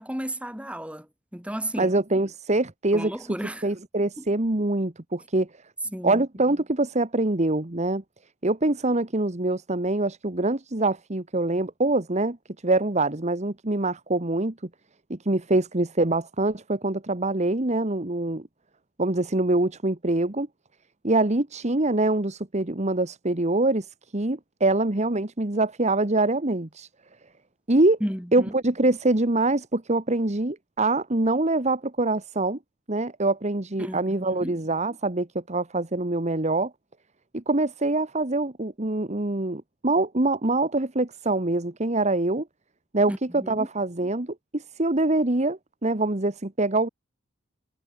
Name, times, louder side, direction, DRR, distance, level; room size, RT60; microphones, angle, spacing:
voice 1, 0.0-1.9 2.9-3.7 4.2-4.3 5.9-6.2 28.0-28.5 33.8-34.6 43.1-43.7, equal, 5° right, 6.8 m, -34 dB
voice 2, 1.8-3.3 3.6-5.5 6.0-8.0 8.4-12.4 12.6-14.5 15.1-18.5 19.0-20.5 21.0-23.9 24.1-26.9 27.7-28.0 28.3-32.6 32.9-36.7 37.3-42.5 42.9-46.9, right 2 dB, 35° right, 1.5 m, -24 dB
head